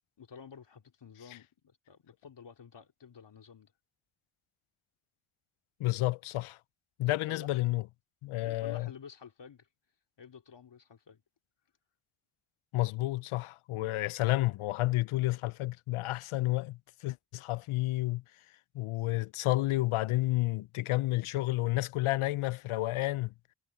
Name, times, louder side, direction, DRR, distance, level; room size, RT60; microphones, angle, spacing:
voice 1, 0.2-3.7 7.0-7.6 8.4-9.7 10.2-11.2, left 6 dB, 60° left, 2.6 m, -51 dB
voice 2, 5.8-6.6 7.0-7.8 8.2-8.9 12.7-18.2 18.7-23.3, left 18 dB, 85° left, 0.6 m, -30 dB
cardioid pair, 85°, 48 cm